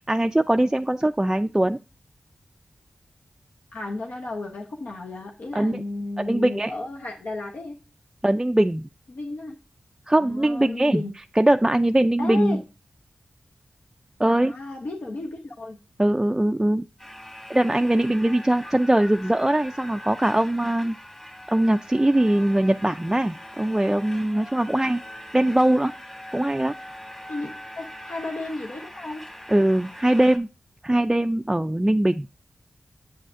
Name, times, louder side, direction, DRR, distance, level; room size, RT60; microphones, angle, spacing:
voice 1, 0.1-1.8 5.5-5.8 6.2-6.7 8.2-8.9 10.1-11.0 11.4-12.6 14.2-14.5 16.0-16.8 17.5-21.0 21.5-25.0 25.3-25.9 26.3-26.7 29.5-30.5 30.8-32.3, right 1 dB, 15° right, 6 dB, 0.3 m, -21 dB
voice 2, 3.7-7.8 9.1-9.6 10.2-11.1 12.2-12.6 14.3-15.8 27.3-27.5 27.8-29.2, left 2 dB, 70° left, 0 dB, 0.9 m, -33 dB
sound 1, 17.0-30.4, equal, 10° left, 1.5 m, -42 dB
7.5 x 7.1 x 2.5 m, 0.30 s
cardioid pair, 45°, 3 cm